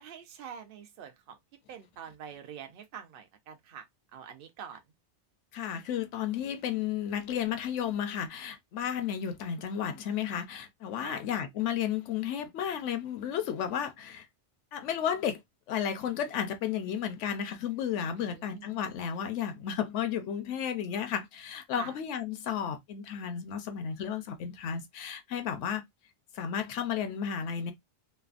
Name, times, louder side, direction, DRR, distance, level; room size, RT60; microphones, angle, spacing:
voice 1, 0.0-1.4 1.7-3.9 4.1-4.8 11.0-11.2 18.2-18.7 21.7-21.9, right 8 dB, 60° right, 0.8 m, -45 dB
voice 2, 5.5-14.3 14.7-15.4 15.7-25.8 26.3-27.7, left 8 dB, 90° left, 1.0 m, -33 dB
3.2 x 2.0 x 2.4 m
omnidirectional pair, 1.2 m